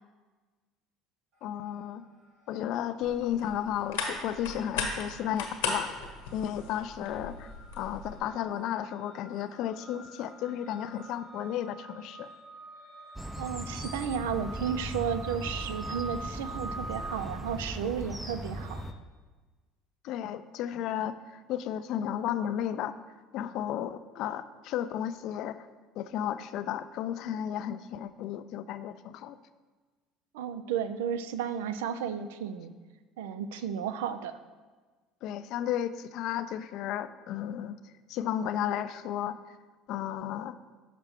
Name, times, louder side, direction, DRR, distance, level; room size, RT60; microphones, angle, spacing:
voice 1, 1.4-2.0 2.5-5.9 6.3-12.3 20.0-23.0 23.3-25.7 26.0-29.4 35.2-37.7 38.1-39.6 39.9-40.6, left 10 dB, 65° left, 12 dB, 0.3 m, -33 dB
sound 1, 1.4-2.0 2.3-18.9, right 2 dB, 65° right, 2.0 m, -47 dB
sound 2, 3.0-8.2, left 4 dB, 90° left, 1.1 m, -37 dB
sound 3, 13.2-18.9, equal, ahead, 0.5 m, -38 dB
voice 2, 13.4-18.8 30.3-32.7 33.2-34.3, right 8 dB, 90° right, 11 dB, 0.4 m, -33 dB
5.8 x 5.6 x 3.6 m, 1.3 s
supercardioid pair, 85°, 0 cm